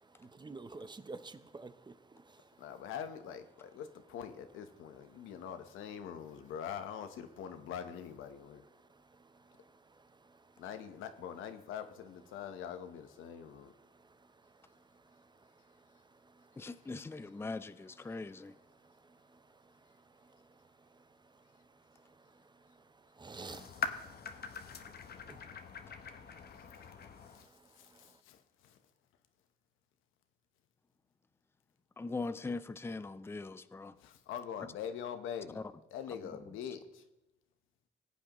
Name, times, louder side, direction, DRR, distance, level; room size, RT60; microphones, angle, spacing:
voice 1, 0.0-2.6 9.1-10.5 14.0-14.5 15.1-16.6 18.8-19.7 20.1-20.7 20.9-21.0 21.3-21.4 22.0-22.9 23.1-27.1 27.5-28.0, right 3 dB, 20° right, 0.7 m, -54 dB
voice 2, 2.6-8.6 10.6-13.7 26.5-26.9 27.3-28.8 34.0-35.6 35.9-37.1, left 8 dB, 90° left, 1.0 m, -44 dB
voice 3, 16.6-18.5 32.0-33.9 35.6-35.7, left 3 dB, 10° left, 0.5 m, -41 dB
sound 1, 23.5-27.5, left 6 dB, 55° left, 1.0 m, -43 dB
19.5 x 8.5 x 3.0 m
cardioid pair, 90°, 20 cm